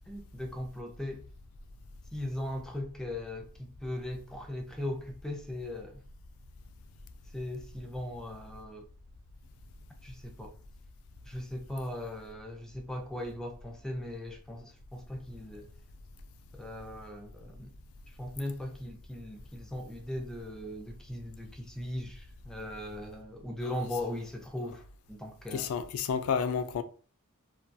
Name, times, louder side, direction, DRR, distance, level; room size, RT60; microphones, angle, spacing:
voice 1, 0.1-1.2 2.1-6.0 7.3-8.9 10.0-10.5 11.3-15.7 16.5-17.8 18.1-24.8 25.1-25.7, left 1 dB, 5° left, 0.4 m, -39 dB
voice 2, 25.5-26.8, left 6 dB, 75° left, 0.3 m, -30 dB
2.2 x 2.1 x 2.6 m
head